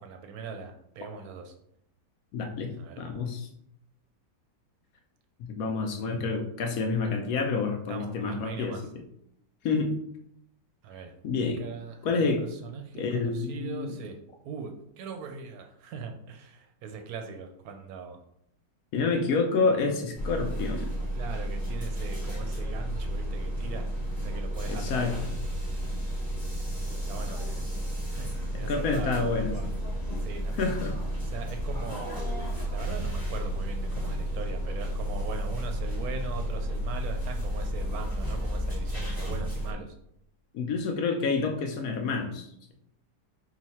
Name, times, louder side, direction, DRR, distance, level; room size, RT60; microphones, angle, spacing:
voice 1, 0.0-1.5 2.8-3.0 7.9-8.9 10.8-11.1 11.6-14.2 14.4-18.2 21.1-23.9 24.2-25.1 26.9-27.6 28.1-29.7 30.2-30.7 31.2-32.3 32.7-39.9, right 5 dB, 70° right, 5 dB, 1.0 m, -40 dB
voice 2, 2.3-3.5 5.4-8.8 9.6-9.9 11.2-11.6 12.0-12.4 12.9-13.9 18.9-20.9 24.7-25.1 28.5-29.7 30.6-31.0 40.5-42.7, left 4 dB, 70° left, 3 dB, 0.9 m, -28 dB
sound 1, 20.2-39.7, equal, 15° left, 0.8 m, -32 dB
3.9 x 2.4 x 4.1 m, 0.73 s
omnidirectional pair, 1.8 m